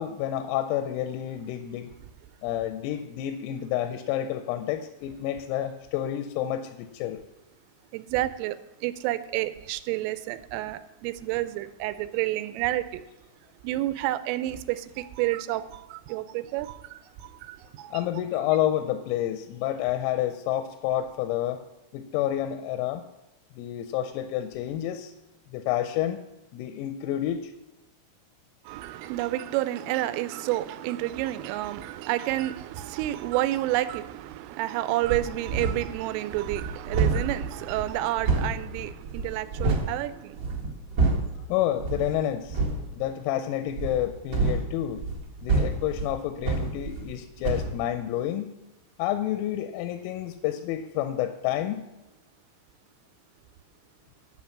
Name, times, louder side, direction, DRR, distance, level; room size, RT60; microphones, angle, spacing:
voice 1, 0.0-1.9 2.4-7.2 17.9-21.6 21.9-23.0 23.6-25.1 25.5-26.2 26.5-27.5 41.5-42.6 42.9-45.0 45.4-48.5 49.0-51.8, left 12 dB, 90° left, 8 dB, 3.3 m, -29 dB
voice 2, 7.9-8.6 8.8-13.0 13.6-17.0 17.4-18.0 28.7-40.4, right 15 dB, 85° right, 13 dB, 3.0 m, -30 dB
sound 1, 35.0-36.0 36.3-39.9 40.3-41.4 41.8-42.1 42.5-42.8 43.7-47.2 47.4-47.8, right 3 dB, 60° right, 1.7 m, -28 dB
10.5 x 5.8 x 7.2 m, 0.98 s
omnidirectional pair, 5.9 m